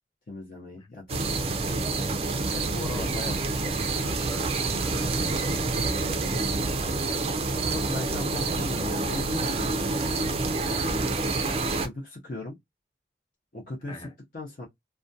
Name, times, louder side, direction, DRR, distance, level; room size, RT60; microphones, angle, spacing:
voice 1, 0.3-1.9 2.5-3.7 7.7-10.2 10.8-12.6 13.5-14.7, left 2 dB, 50° left, 0.6 m, -38 dB
sound 1, 1.1-11.9, right 3 dB, 35° right, 0.3 m, -27 dB
voice 2, 2.9-3.3 4.0-6.2 13.9-14.1, left 1 dB, 25° left, 0.9 m, -42 dB
2.4 x 2.2 x 2.6 m
head